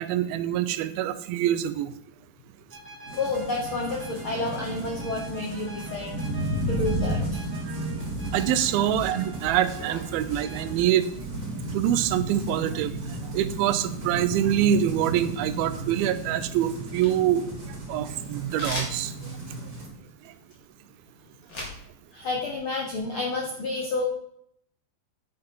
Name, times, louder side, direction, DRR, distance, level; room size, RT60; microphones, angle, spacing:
voice 1, 0.0-1.9 7.6-7.8 8.3-11.1 11.7-12.9 13.3-17.5 17.9-19.1, right 11 dB, 85° right, 13 dB, 2.5 m, -25 dB
sound 1, 2.7-10.8, right 1 dB, 5° left, 1.6 m, -43 dB
sound 2, 3.1-19.9, right 2 dB, 30° right, 2.6 m, -34 dB
voice 2, 3.2-6.2 6.7-7.4 22.1-24.0, left 3 dB, 80° left, 0 dB, 1.1 m, -30 dB
sound 3, 15.7-16.3 16.7-18.0 18.6-21.8 22.1-23.0, left 1 dB, 30° left, 2.3 m, -38 dB
10.0 x 5.8 x 5.3 m, 0.71 s
omnidirectional pair, 4.2 m